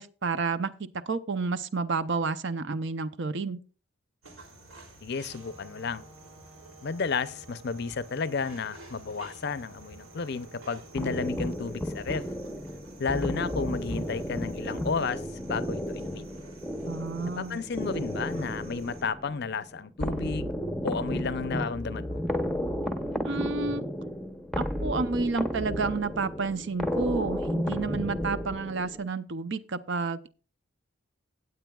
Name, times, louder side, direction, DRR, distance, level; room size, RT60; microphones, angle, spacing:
voice 1, 0.0-3.6 16.9-17.6 23.2-23.8 24.6-30.3, right 4 dB, 55° right, 0.6 m, -30 dB
sound 1, 4.2-19.0, right 2 dB, 75° right, 3.0 m, -51 dB
voice 2, 5.0-6.0 6.8-12.2 13.0-16.4 17.4-20.5 20.8-22.2, left 5 dB, 50° left, 0.5 m, -32 dB
sound 2, 5.2-13.3, right 2 dB, 30° right, 3.2 m, -55 dB
sound 3, 11.0-29.1, equal, ahead, 0.7 m, -33 dB
18.0 x 8.0 x 2.3 m
head